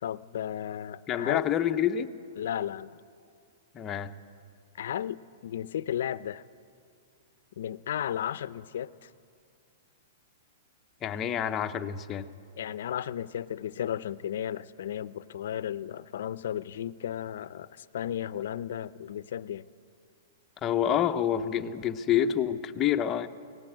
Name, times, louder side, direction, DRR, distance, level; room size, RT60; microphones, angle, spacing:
voice 1, 0.0-1.4 2.4-2.9 4.8-6.4 7.6-9.1 12.6-19.6, left 10 dB, 65° left, 17 dB, 0.5 m, -34 dB
voice 2, 1.1-2.1 3.7-4.1 11.0-12.3 20.6-23.3, left 10 dB, 20° left, 8 dB, 0.7 m, -27 dB
18.0 x 17.0 x 8.9 m, 2.3 s
hypercardioid pair, 160°, 0 cm